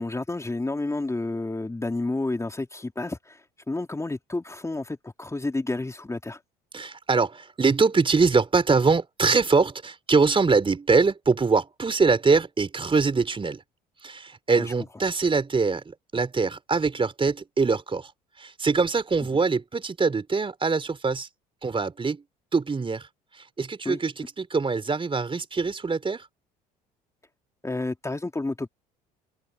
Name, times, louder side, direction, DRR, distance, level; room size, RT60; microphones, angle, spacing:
voice 1, 0.0-6.4 14.6-14.7 23.9-24.0 27.6-28.7, left 2 dB, 15° left, 3.5 m, -30 dB
voice 2, 6.7-13.6 14.0-18.1 18.4-21.3 21.6-22.2 22.5-23.1 23.3-26.3, right 4 dB, 25° right, 4.0 m, -23 dB
hypercardioid pair, 60°, 20 cm